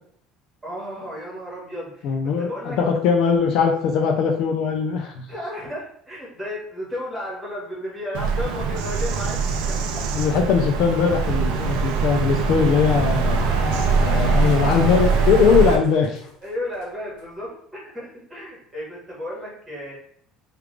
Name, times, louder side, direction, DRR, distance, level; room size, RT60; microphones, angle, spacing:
voice 1, 0.6-2.1 2.4-2.8 5.3-9.4 9.7-10.0 14.0-14.4 16.4-19.9, left 1 dB, 10° right, -6 dB, 1.4 m, -33 dB
voice 2, 2.0-5.3 10.1-16.2, left 6 dB, 55° left, 3 dB, 0.4 m, -21 dB
Bird vocalization bird call bird song, 8.1-15.8, right 4 dB, 80° right, 0.4 m, -22 dB
sound 1, 12.8-16.5 16.8-16.9 17.2-17.3, left 2 dB, 85° left, 0.9 m, -34 dB
3.3 x 2.4 x 3.2 m, 0.64 s
cardioid pair, 160°, 0 cm